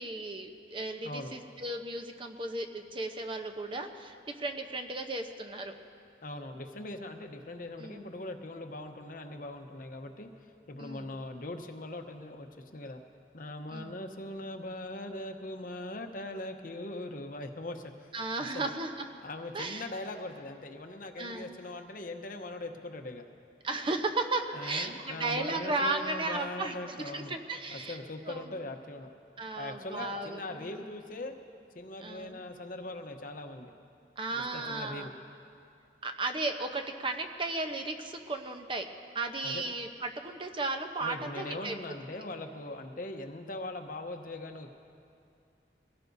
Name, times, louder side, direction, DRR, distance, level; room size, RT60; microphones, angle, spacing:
voice 1, 0.0-5.7 7.8-8.1 10.8-11.1 13.7-14.0 18.1-19.1 19.5-19.9 21.2-21.6 23.6-28.0 28.3-28.5 29.4-30.7 32.0-32.4 34.2-35.1 36.0-38.9 39.1-41.7, right 2 dB, 30° right, 4 dB, 0.8 m, -35 dB
voice 2, 1.0-1.3 6.2-10.3 10.7-13.0 13.3-18.1 18.5-18.7 19.2-23.2 24.5-27.3 27.7-29.1 29.6-31.4 31.7-33.7 34.3-35.1 39.4-39.6 41.0-44.7, left 2 dB, 50° left, 5 dB, 0.9 m, -41 dB
23.0 x 17.0 x 2.7 m, 2.5 s
head